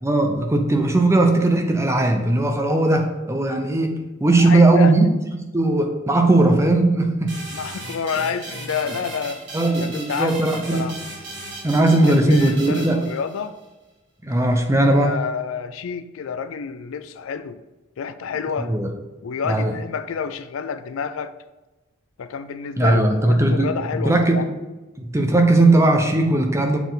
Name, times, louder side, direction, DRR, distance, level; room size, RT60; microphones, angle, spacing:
voice 1, 0.0-5.1 5.5-7.3 9.5-10.9 11.6-13.1 14.2-15.1 18.6-18.9 19.4-19.7 22.8-23.7 24.0-24.5 25.0-26.8, right 2 dB, 15° right, 4 dB, 0.6 m, -18 dB
voice 2, 4.4-4.9 7.5-9.4 9.7-10.4 10.7-11.0 11.9-13.6 14.8-17.6 18.0-18.7 19.2-21.3 22.2-24.5, left 6 dB, 75° left, 12 dB, 0.4 m, -29 dB
sound 1, 7.3-13.6, right 2 dB, 60° right, 1.8 m, -36 dB
7.0 x 4.1 x 4.0 m, 1.1 s
head